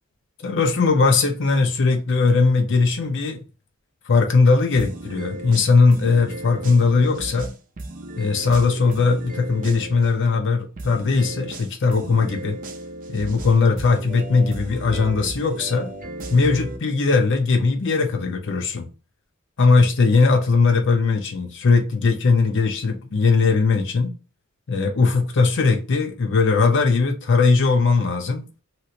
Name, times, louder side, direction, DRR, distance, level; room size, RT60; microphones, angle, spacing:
voice 1, 0.4-3.4 4.1-7.5 8.2-12.6 13.1-15.9 16.3-18.9 19.6-24.1 24.7-28.4, left 4 dB, 60° left, 0.6 m, -19 dB
sound 1, 4.8-10.1 10.8-16.8, right 1 dB, 40° right, 0.5 m, -35 dB
2.9 x 2.5 x 2.8 m
head